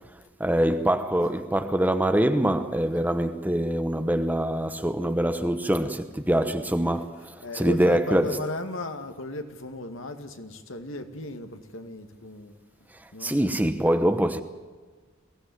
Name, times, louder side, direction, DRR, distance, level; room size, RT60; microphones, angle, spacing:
voice 1, 0.4-8.4 13.2-14.4, right 1 dB, 10° right, 1.0 m, -24 dB
voice 2, 7.4-12.5 13.1-13.4, left 1 dB, 70° left, 2.2 m, -36 dB
22.5 x 16.5 x 9.5 m
head